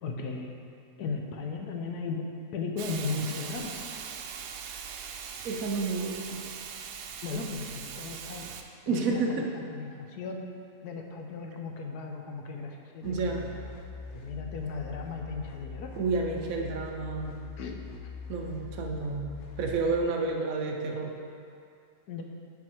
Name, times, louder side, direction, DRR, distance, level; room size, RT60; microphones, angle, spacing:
voice 1, 0.0-0.5 1.0-2.2 2.5-3.7 7.2-8.5 8.9-10.4 10.8-13.5 14.1-15.9 17.6-17.7 22.1-22.2, left 4 dB, 85° left, 3 dB, 1.3 m, -36 dB
Hiss, 2.8-8.6, right 7 dB, 90° right, 1.1 m, -40 dB
voice 2, 5.4-6.4 8.9-9.5 13.0-13.4 16.0-17.4 18.3-21.1, right 3 dB, 65° right, 2 dB, 1.1 m, -30 dB
sound 1, 13.0-20.0, left 5 dB, 55° left, 0.9 m, -43 dB
9.4 x 4.7 x 4.5 m, 2.4 s
omnidirectional pair, 1.6 m